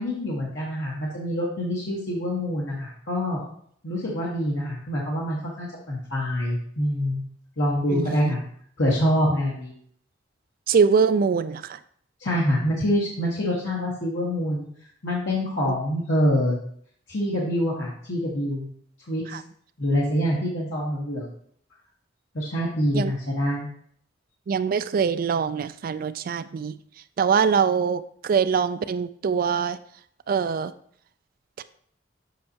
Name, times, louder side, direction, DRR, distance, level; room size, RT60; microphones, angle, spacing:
voice 1, 0.0-3.4 3.8-7.2 7.6-8.4 8.8-9.7 12.2-14.7 15.0-16.6 17.1-18.7 19.1-19.4 19.8-21.3 22.3-23.7, equal, 70° left, -5 dB, 1.4 m, -25 dB
voice 2, 7.9-8.4 10.7-11.8 15.7-15.8 19.3-19.4 22.9-23.1 24.5-26.8 27.2-29.8 30.3-30.7 31.6-31.7, right 6 dB, 50° right, 13 dB, 0.3 m, -23 dB
7.5 x 5.3 x 2.9 m, 0.62 s
head